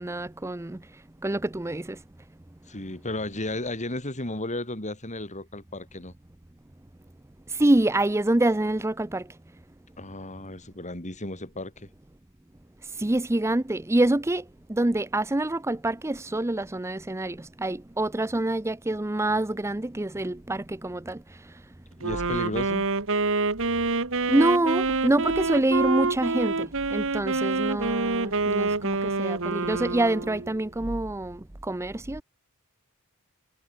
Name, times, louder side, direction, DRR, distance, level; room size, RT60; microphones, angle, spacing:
voice 1, 0.0-2.0 7.5-9.4 12.8-21.6 24.3-32.2, right 1 dB, 10° right, 0.6 m, -26 dB
voice 2, 2.7-6.1 10.0-11.9 22.0-22.9, left 1 dB, 35° left, 5.1 m, -34 dB
Wind instrument woodwind instrument, 22.0-30.6, right 3 dB, 65° right, 2.1 m, -27 dB
head